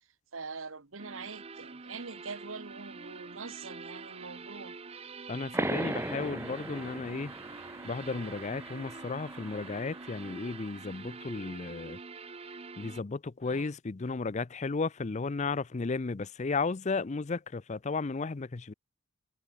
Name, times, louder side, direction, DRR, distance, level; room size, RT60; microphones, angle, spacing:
voice 1, 0.3-4.8 13.4-13.7, right 4 dB, 80° right, 1.8 m, -43 dB
sound 1, 1.0-13.0, right 4 dB, 30° right, 0.7 m, -46 dB
voice 2, 5.3-7.3 7.8-12.0 12.8-18.7, left 4 dB, 35° left, 0.5 m, -34 dB
sound 2, 5.5-10.8, right 1 dB, 15° right, 1.8 m, -38 dB
head